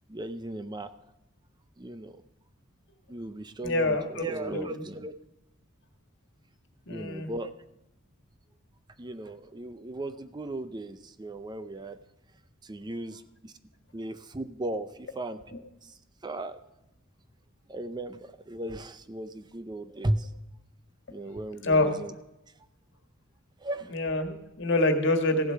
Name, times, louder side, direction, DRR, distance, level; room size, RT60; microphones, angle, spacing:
voice 1, 0.1-1.0 1.8-2.2 3.1-5.1 6.9-7.5 9.0-12.0 12.6-13.5 13.9-15.5 15.8-16.6 17.7-20.3 21.1-22.1 23.6-23.9, right 1 dB, 20° right, 11 dB, 0.5 m, -36 dB
voice 2, 3.6-4.8 6.9-7.3 21.6-21.9 23.9-25.5, left 2 dB, 60° left, 6 dB, 1.7 m, -26 dB
15.5 x 8.0 x 5.7 m, 0.93 s
head